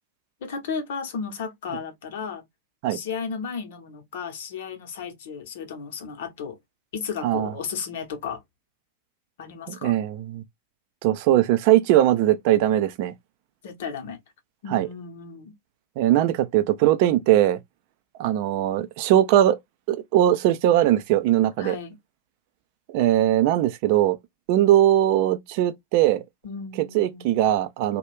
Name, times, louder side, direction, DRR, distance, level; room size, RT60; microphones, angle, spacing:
voice 1, 0.4-2.4 2.9-6.6 6.9-8.4 9.4-9.9 13.6-14.2 14.6-15.5 21.6-22.0 26.4-27.3, left 6 dB, 55° left, 0.8 m, -34 dB
voice 2, 9.7-10.4 11.0-13.1 14.7-14.9 16.0-17.6 18.2-19.6 19.9-21.8 22.9-24.2 24.5-26.2 26.8-28.0, right 12 dB, 45° right, 0.4 m, -20 dB
2.4 x 2.2 x 3.1 m
figure-of-eight pair, 90°, 0 cm